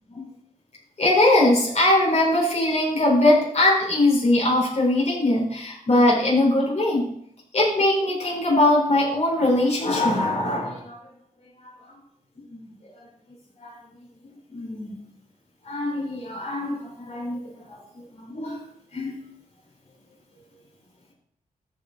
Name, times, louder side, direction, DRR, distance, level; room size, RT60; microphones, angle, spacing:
voice 1, 1.0-7.1 7.5-11.0 11.6-11.7 12.5-12.6 13.6-13.7 14.5-15.0 15.6-18.6 18.9-19.2, left 1 dB, 50° left, -3 dB, 4.8 m, -21 dB
14.0 x 6.0 x 4.0 m, 0.71 s
wide cardioid pair, 95°, 15 cm